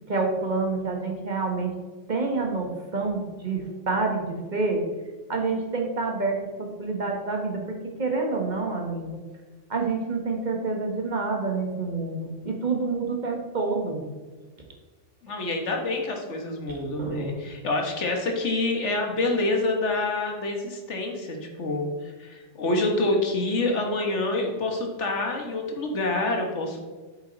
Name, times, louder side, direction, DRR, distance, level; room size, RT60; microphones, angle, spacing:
voice 1, 0.1-1.7 2.1-4.8 5.3-9.2 9.7-14.0 16.7-17.3, right 3 dB, 40° right, 2 dB, 1.4 m, -28 dB
voice 2, 15.2-26.9, left 2 dB, 70° left, 2 dB, 1.7 m, -27 dB
8.4 x 7.5 x 4.0 m, 1.3 s
omnidirectional pair, 1.3 m